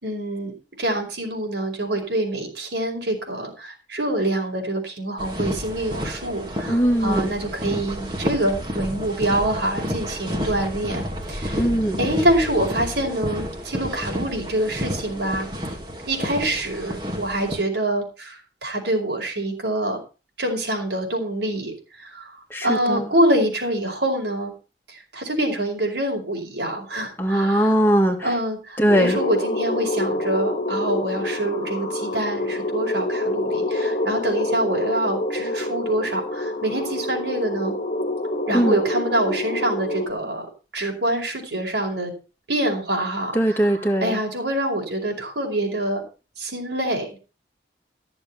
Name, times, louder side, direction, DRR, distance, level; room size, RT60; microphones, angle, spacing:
voice 1, 0.0-11.0 11.3-11.6 12.0-15.5 16.1-20.0 20.4-21.7 22.0-22.3 22.6-24.5 24.9-27.8 28.2-37.7 38.5-40.5 40.7-42.1 42.5-46.0 46.4-47.2, right 1 dB, 70° right, 0 dB, 5.1 m, -25 dB
sound 1, 5.2-17.6, equal, 25° right, 2.1 m, -30 dB
voice 2, 6.7-7.3 11.6-12.0 22.5-23.0 27.2-28.2 28.8-29.2 38.5-38.8 43.3-44.2, right 1 dB, 10° left, 2 dB, 1.9 m, -20 dB
sound 2, 28.9-40.1, left 1 dB, 40° left, 1.6 m, -26 dB
14.5 x 7.2 x 5.5 m, 0.32 s
head